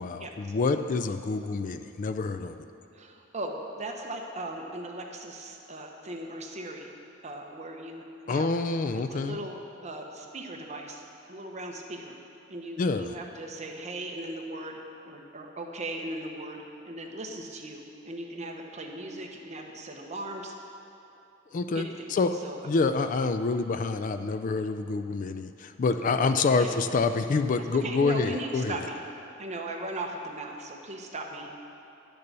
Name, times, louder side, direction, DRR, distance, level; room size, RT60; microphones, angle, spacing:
voice 1, 0.0-2.6 8.3-9.4 12.8-13.1 21.5-22.4 22.6-28.8, left 4 dB, 40° left, 9 dB, 0.4 m, -27 dB
voice 2, 2.9-6.9 7.2-8.5 8.9-11.0 11.3-12.2 12.5-20.5 21.7-22.1 22.4-22.6 26.3-26.8 27.7-29.0 29.4-31.6, right 1 dB, 35° right, 1 dB, 1.0 m, -38 dB
10.5 x 6.8 x 6.7 m, 2.7 s
head